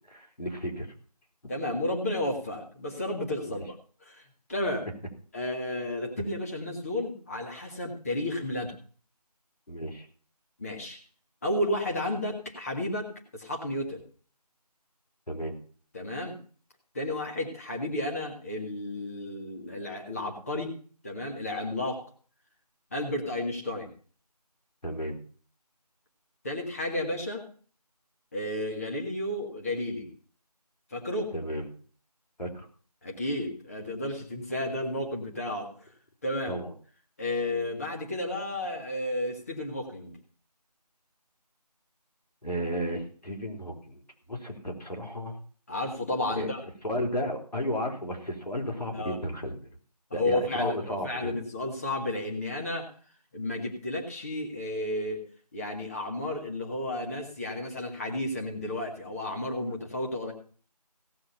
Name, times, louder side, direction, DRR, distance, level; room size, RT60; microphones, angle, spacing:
voice 1, 0.1-0.9 3.5-3.6 9.7-10.1 15.3-15.6 24.8-25.2 31.3-31.7 32.4-32.7 36.5-36.7 42.4-44.0 44.3-45.4 46.4-46.5 46.8-49.7 50.1-51.3, equal, 85° left, 2 dB, 3.8 m, -33 dB
voice 2, 1.5-4.9 5.3-8.7 10.6-11.0 11.4-14.0 15.9-16.4 16.9-20.7 21.0-22.1 22.9-23.9 26.4-27.5 28.3-30.1 30.9-31.3 33.0-35.9 36.2-36.6 37.2-40.2 45.7-46.6 48.9-49.2 50.1-52.9 53.3-55.2 55.5-60.3, left 1 dB, 20° left, 0 dB, 1.8 m, -32 dB
17.0 x 6.1 x 5.7 m, 0.43 s
figure-of-eight pair, 170°, 21 cm